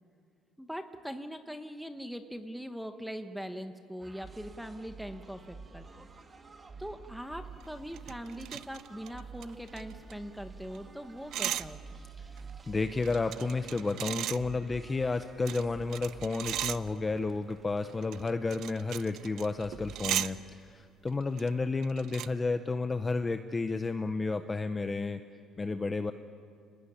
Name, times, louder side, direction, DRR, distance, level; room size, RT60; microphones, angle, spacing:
voice 1, 0.6-6.1 6.8-12.0, equal, ahead, 7 dB, 1.1 m, -41 dB
sound 1, 4.0-20.1, right 4 dB, 20° right, 1.7 m, -50 dB
sound 2, 7.3-10.5 10.7-10.8 11.0-11.6 12.1-14.4 15.1-17.1 17.9-20.3 21.1-21.5 21.8-22.3, right 12 dB, 60° right, 0.6 m, -37 dB
voice 2, 12.7-25.2 25.6-26.1, left 3 dB, 15° left, 8 dB, 0.7 m, -31 dB
29.0 x 18.5 x 10.0 m, 2.4 s
cardioid pair, 155°, 0 cm